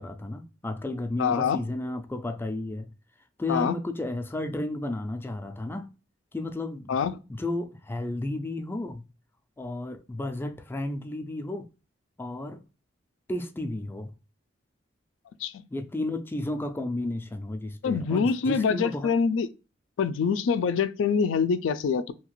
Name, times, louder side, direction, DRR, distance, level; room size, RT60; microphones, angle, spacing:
voice 1, 0.0-2.9 3.4-5.9 6.3-7.0 7.3-9.0 9.6-11.7 12.2-12.6 13.3-14.1 15.7-19.1, left 2 dB, 10° left, 0.3 m, -33 dB
voice 2, 1.2-1.6 3.5-3.7 6.9-7.1 15.4-15.6 17.8-19.5 20.0-22.1, left 6 dB, 90° left, 0.3 m, -25 dB
2.8 x 2.4 x 3.0 m
head